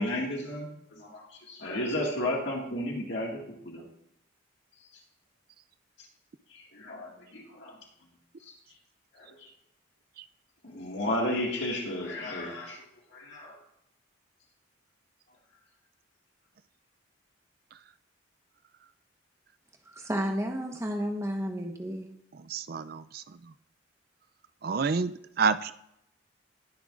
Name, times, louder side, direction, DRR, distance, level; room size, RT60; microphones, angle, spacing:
voice 1, 0.0-3.9 6.5-7.8 8.4-8.5 9.1-9.5 10.6-12.9 13.1-13.6, left 1 dB, 65° left, -1 dB, 2.0 m, -33 dB
voice 2, 19.9-22.1, equal, 15° right, 3 dB, 1.1 m, -32 dB
voice 3, 22.5-23.2 24.6-25.7, right 5 dB, 50° right, 14 dB, 0.4 m, -28 dB
19.5 x 6.9 x 2.5 m, 0.77 s
head